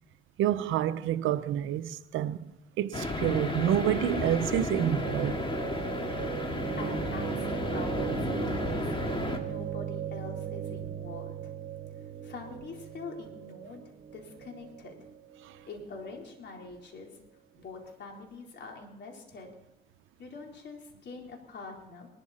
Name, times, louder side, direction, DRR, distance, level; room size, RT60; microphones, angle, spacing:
voice 1, 0.4-2.5 2.8-5.4, right 11 dB, 85° right, 0.7 m, -28 dB
sound 1, 2.9-9.4, left 2 dB, 25° left, 2.3 m, -33 dB
sound 2, 4.3-16.4, right 8 dB, 55° right, 1.9 m, -38 dB
voice 2, 6.7-8.9 9.4-11.5 12.2-13.8 14.1-14.9 15.7-17.2 17.6-19.5 20.2-22.1, left 3 dB, 60° left, 4.0 m, -44 dB
19.5 x 12.5 x 4.2 m
cardioid pair, 90°, 20 cm